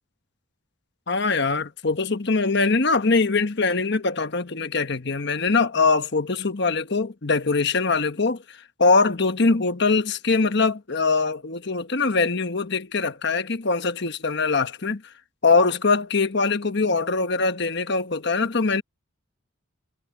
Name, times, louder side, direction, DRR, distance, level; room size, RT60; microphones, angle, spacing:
voice 1, 1.1-8.4 8.8-15.0 15.4-18.8, left 4 dB, 55° left, 1.2 m, -22 dB
head